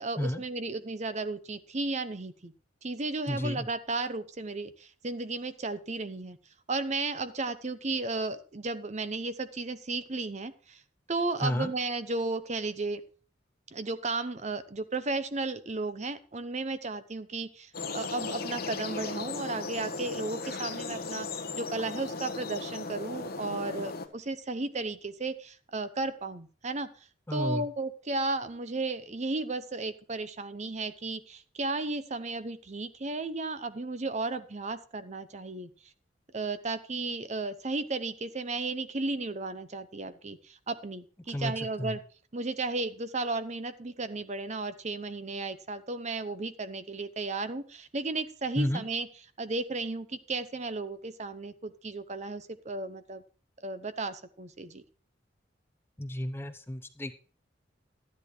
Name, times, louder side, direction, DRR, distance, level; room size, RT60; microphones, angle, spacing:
voice 1, 0.0-2.5 2.8-6.4 6.7-10.8 11.1-13.0 13.7-35.7 36.3-42.0 42.3-49.1 49.4-53.2 53.6-54.8, right 3 dB, 40° right, 12 dB, 0.8 m, -34 dB
voice 2, 3.3-3.7 11.4-11.7 27.3-27.7 41.3-41.5 41.8-42.0 48.6-48.9 56.0-57.1, left 1 dB, 15° left, 9 dB, 0.7 m, -31 dB
sound 1, 17.7-24.1, left 3 dB, 55° left, 1.3 m, -36 dB
12.5 x 10.0 x 3.2 m, 0.39 s
head